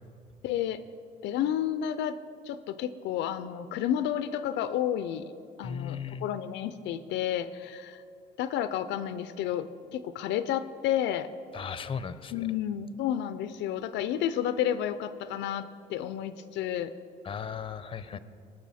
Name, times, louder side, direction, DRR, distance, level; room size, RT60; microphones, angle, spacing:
voice 1, 0.4-0.8 1.2-2.2 2.5-5.3 5.6-8.0 8.4-11.3 12.3-16.9, left 10 dB, 80° left, 12 dB, 0.4 m, -31 dB
voice 2, 5.6-6.3 11.5-12.5 17.2-18.2, left 7 dB, 30° left, 13 dB, 0.6 m, -36 dB
18.5 x 6.4 x 4.2 m, 2.4 s
cardioid pair, 85°, 18 cm